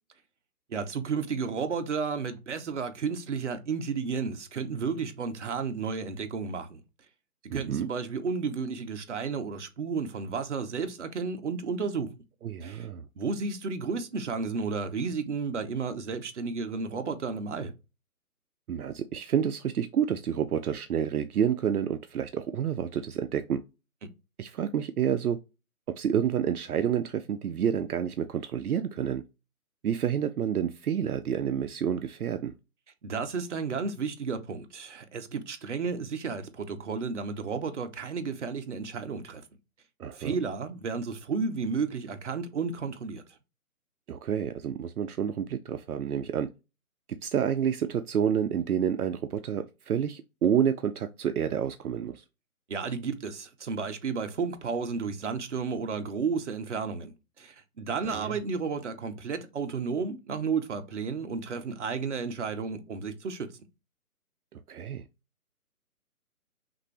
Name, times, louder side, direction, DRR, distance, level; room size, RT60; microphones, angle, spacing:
voice 1, 0.7-6.8 7.4-12.1 12.6-12.9 13.2-17.7 33.0-39.4 40.1-43.2 52.7-63.5, right 5 dB, 50° right, 0.9 m, -32 dB
voice 2, 7.5-7.9 12.4-13.1 18.7-23.6 24.4-25.4 25.9-29.2 29.8-32.5 40.0-40.4 44.1-46.5 47.2-52.2 58.0-58.4 64.5-65.0, right 8 dB, 75° right, 0.6 m, -29 dB
5.9 x 2.6 x 3.2 m
hypercardioid pair, 165°, 45 cm